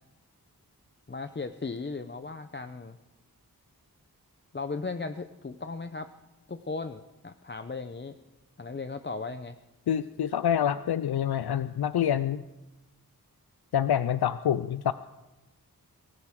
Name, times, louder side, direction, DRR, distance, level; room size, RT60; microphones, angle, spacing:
voice 1, 1.1-3.0 4.5-6.1 6.5-8.2 8.6-9.6, left 3 dB, 30° left, 9 dB, 0.7 m, -36 dB
voice 2, 9.9-12.4 13.7-14.9, left 9 dB, 85° left, 14 dB, 0.5 m, -26 dB
23.5 x 14.5 x 3.7 m, 1.0 s
wide cardioid pair, 45°, 37 cm